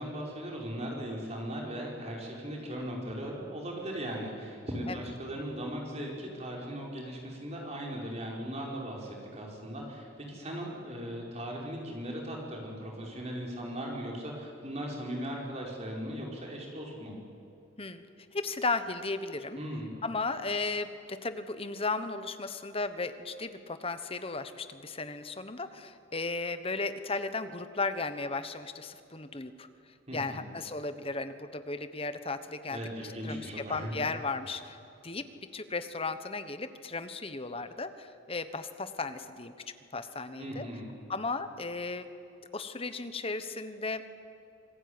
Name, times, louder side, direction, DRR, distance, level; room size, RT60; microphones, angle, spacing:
voice 1, 0.0-17.2 19.6-19.9 30.1-30.4 32.7-33.9 40.4-40.9, equal, 30° right, -1 dB, 5.2 m, -38 dB
voice 2, 18.3-19.6 20.0-29.7 30.1-34.8 35.0-35.2 35.5-39.5 39.9-40.7 41.1-42.1 42.5-44.0, left 3 dB, 25° left, 10 dB, 1.1 m, -35 dB
26.5 x 20.5 x 9.7 m, 2.6 s
head